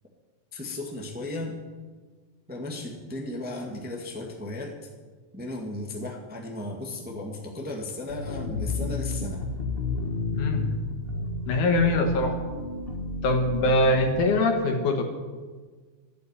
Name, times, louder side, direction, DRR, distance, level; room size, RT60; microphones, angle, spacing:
voice 1, 0.5-1.6 2.5-4.9 5.3-9.4, left 2 dB, 5° right, -1 dB, 1.2 m, -35 dB
sound 1, 8.1-14.1, left 3 dB, 35° left, 0.9 m, -31 dB
voice 2, 11.5-12.4 13.2-15.0, left 2 dB, 80° left, 4 dB, 3.0 m, -22 dB
12.5 x 8.5 x 9.7 m, 1.4 s
omnidirectional pair, 3.5 m